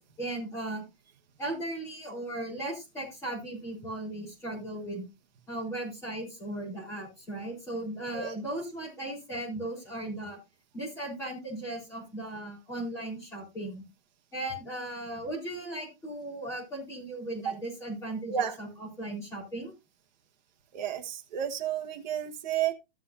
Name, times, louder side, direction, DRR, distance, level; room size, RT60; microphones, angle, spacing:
voice 1, 0.2-0.8 1.4-5.0 5.5-10.4 10.7-13.8 14.3-19.7, right 1 dB, 10° left, -4 dB, 3.8 m, -37 dB
voice 2, 20.7-22.7, right 9 dB, 45° right, 5 dB, 1.1 m, -31 dB
14.0 x 7.6 x 2.6 m, 0.23 s
hypercardioid pair, 170°, 31 cm